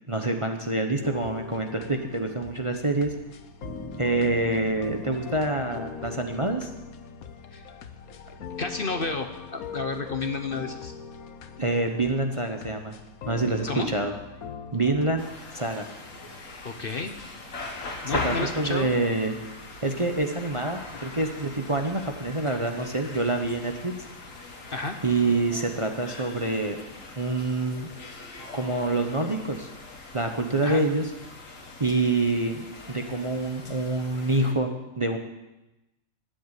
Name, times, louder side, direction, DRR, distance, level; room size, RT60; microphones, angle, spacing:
voice 1, 0.1-3.1 4.0-6.7 11.6-12.9 13.3-14.1 14.7-15.2 15.5-15.9 18.1-19.4 19.8-23.9 25.0-26.8 27.2-27.9 28.5-29.7 30.1-31.1 31.8-35.2, right 2 dB, 25° right, 4 dB, 0.9 m, -26 dB
sound 1, 1.0-15.3, left 7 dB, 90° left, 1.4 m, -42 dB
sound 2, 3.6-14.4, right 2 dB, 60° right, 2.3 m, -49 dB
voice 2, 8.4-10.9 13.7-13.9 16.6-17.1 18.0-18.9 24.7-25.0 30.6-30.8, left 3 dB, 45° left, 7 dB, 1.0 m, -31 dB
sound 3, 15.2-34.5, left 3 dB, 70° left, 2.1 m, -40 dB
12.5 x 9.9 x 8.3 m, 1.0 s
omnidirectional pair, 1.5 m